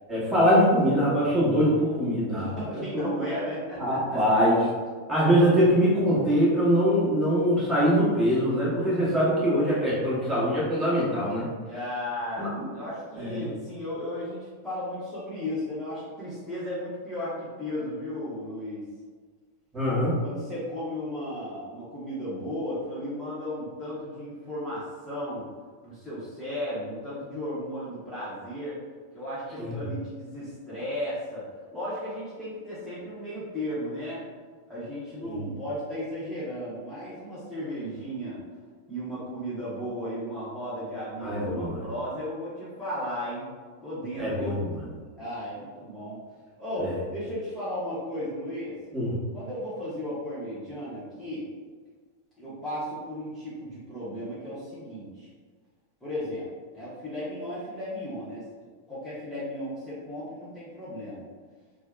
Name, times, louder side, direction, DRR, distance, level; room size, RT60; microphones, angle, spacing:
voice 1, 0.1-3.1 3.8-4.6 5.1-11.5 12.4-12.7 13.2-13.5 19.7-20.2 29.6-29.8 35.2-35.4 41.2-41.9 44.2-44.9 46.8-46.9 48.9-49.1, equal, 15° right, -8 dB, 1.4 m, -23 dB
voice 2, 2.3-4.2 11.7-18.8 20.2-25.4 25.8-28.8 29.1-31.4 31.7-34.2 34.7-38.4 38.9-43.4 43.8-44.6 45.2-46.2 46.6-48.8 49.3-51.4 52.4-55.3 56.0-58.4 58.9-61.2, left 1 dB, 5° left, -13 dB, 1.1 m, -35 dB
3.4 x 2.2 x 3.3 m, 1.5 s
figure-of-eight pair, 90°, 0 cm